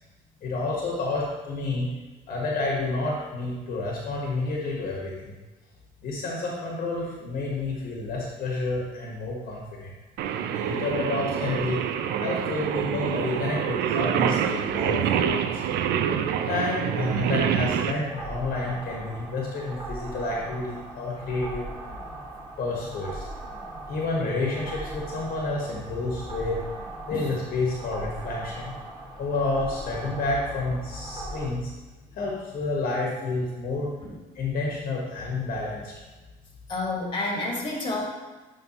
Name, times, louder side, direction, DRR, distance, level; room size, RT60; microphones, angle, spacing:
voice 1, 0.4-1.9 2.3-5.3 6.0-9.9 10.5-11.8 12.2-15.6 16.5-21.7 22.6-23.3 23.9-26.6 27.1-28.7 29.2-31.7 32.1-33.9 34.3-35.9, left 2 dB, 60° left, -2 dB, 1.2 m, -29 dB
Singing, 10.2-17.9, right 8 dB, 75° right, 0.4 m, -26 dB
sound 1, 18.1-31.5, right 2 dB, 25° right, 1.2 m, -39 dB
voice 2, 36.7-38.1, left 2 dB, 30° left, -1 dB, 1.6 m, -29 dB
9.4 x 3.6 x 3.0 m, 1.2 s
cardioid pair, 110°, 17 cm